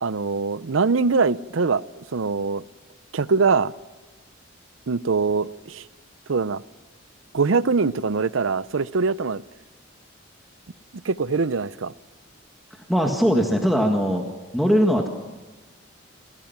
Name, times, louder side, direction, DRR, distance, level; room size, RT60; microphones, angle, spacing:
voice 1, 0.0-2.6 3.1-3.7 4.9-5.8 6.3-6.6 7.3-9.4 11.0-11.9, right 4 dB, 75° right, 0.6 m, -23 dB
voice 2, 12.9-14.3 14.5-15.1, equal, ahead, 1.8 m, -20 dB
29.5 x 17.5 x 6.0 m
head